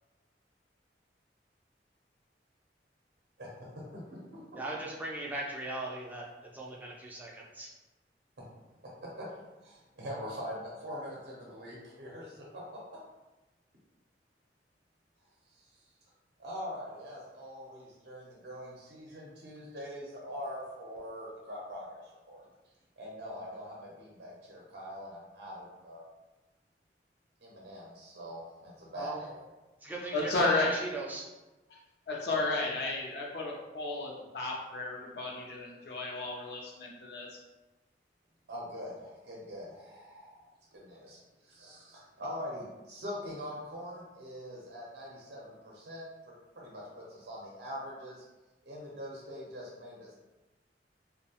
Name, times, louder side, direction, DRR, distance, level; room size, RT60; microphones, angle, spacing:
voice 1, 3.4-3.8 4.1-4.4 9.0-9.3 9.6-13.0 15.5-15.7 16.4-22.4 23.0-26.0 27.4-29.4 38.5-46.0 46.6-48.2 48.6-50.1, equal, 60° right, -4 dB, 0.6 m, -43 dB
voice 2, 4.5-7.7 28.9-29.2 29.8-31.3, right 2 dB, 10° right, -3 dB, 0.3 m, -39 dB
voice 3, 30.1-30.7 31.7-31.8 32.1-37.4, left 2 dB, 65° left, -2 dB, 0.4 m, -33 dB
2.6 x 2.0 x 2.8 m, 1.1 s
head